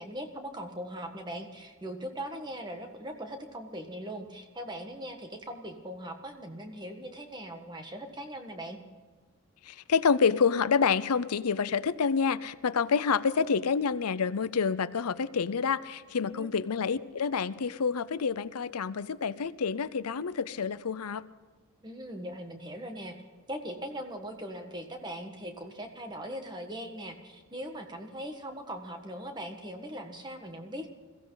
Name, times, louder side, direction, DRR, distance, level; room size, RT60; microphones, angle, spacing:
voice 1, 0.0-8.8 16.3-16.5 21.8-23.1 23.5-30.9, equal, 20° right, 4 dB, 1.6 m, -40 dB
voice 2, 9.6-21.2, left 6 dB, 90° left, 15 dB, 0.6 m, -28 dB
21.5 x 15.5 x 4.0 m, 1.4 s
head